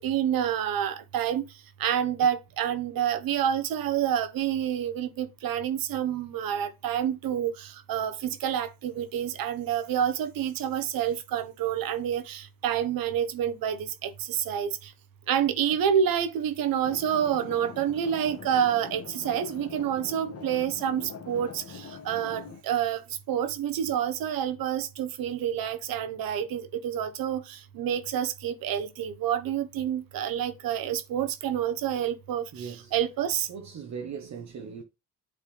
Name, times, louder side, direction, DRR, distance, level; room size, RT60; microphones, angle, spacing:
voice 1, 0.0-1.4 1.8-14.7 15.3-23.0 23.3-33.5, right 9 dB, 70° right, 1.1 m, -28 dB
sound 1, 16.8-22.6, left 5 dB, 40° left, 1.4 m, -43 dB
voice 2, 32.5-32.9 33.5-34.8, right 6 dB, 50° right, 1.0 m, -39 dB
8.6 x 3.7 x 3.2 m
cardioid pair, 85°, 36 cm